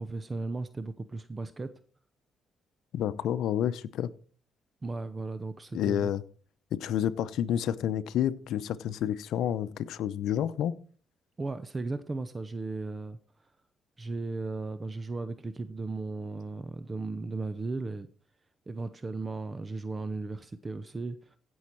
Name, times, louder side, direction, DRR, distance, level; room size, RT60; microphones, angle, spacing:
voice 1, 0.0-1.7 4.8-6.1 11.4-13.2 14.0-18.1 18.7-21.4, right 3 dB, 25° right, 12 dB, 0.7 m, -36 dB
voice 2, 2.9-4.1 5.7-6.2 6.7-10.8, left 10 dB, 80° left, 13 dB, 0.7 m, -29 dB
16.0 x 6.4 x 4.5 m, 0.42 s
cardioid pair, 90°, 0 cm